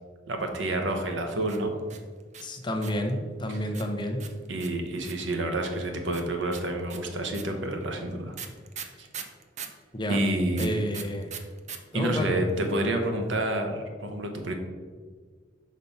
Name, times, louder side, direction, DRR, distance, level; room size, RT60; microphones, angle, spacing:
voice 1, 0.3-1.7 3.5-3.6 4.5-8.3 9.0-9.1 10.1-10.8 11.9-14.5, right 1 dB, 80° right, 4 dB, 0.9 m, -29 dB
sound 1, 1.4-3.1 3.7-5.3 6.1-9.8 10.5-11.8 12.0-12.1 12.3-12.8, right 7 dB, 40° right, 0.5 m, -40 dB
voice 2, 2.4-4.3 9.9-10.2 10.6-11.3 11.9-12.4, equal, 25° left, 4 dB, 0.7 m, -30 dB
5.2 x 4.1 x 5.6 m, 1.5 s
head